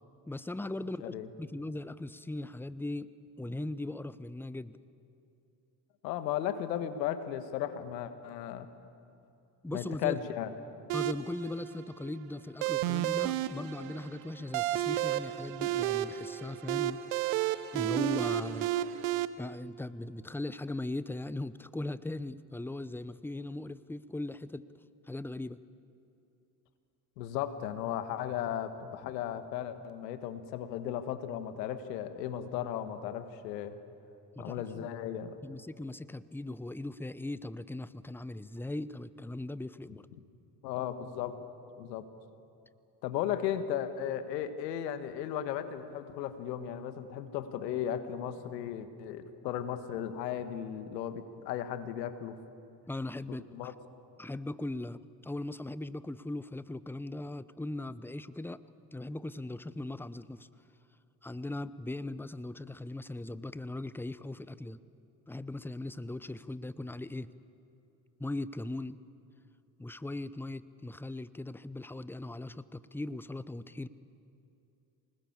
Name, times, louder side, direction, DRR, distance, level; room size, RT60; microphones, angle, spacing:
voice 1, 0.3-3.1 3.4-4.8 9.6-10.2 10.9-17.0 17.7-18.7 19.4-24.7 25.1-25.6 34.3-34.9 35.4-40.1 52.9-53.7 54.2-58.6 58.9-60.5 61.2-64.8 65.3-67.3 68.2-69.0 69.8-73.9, left 2 dB, 5° left, 16 dB, 0.7 m, -39 dB
voice 2, 6.0-8.7 9.7-10.5 27.2-33.8 34.4-35.6 40.6-41.3 41.8-42.1 43.0-52.4 53.3-53.7, left 10 dB, 80° left, 11 dB, 1.4 m, -36 dB
sound 1, 10.9-19.2, right 13 dB, 70° right, 0.9 m, -32 dB
24.5 x 19.5 x 8.5 m, 2.7 s
hypercardioid pair, 55°, 49 cm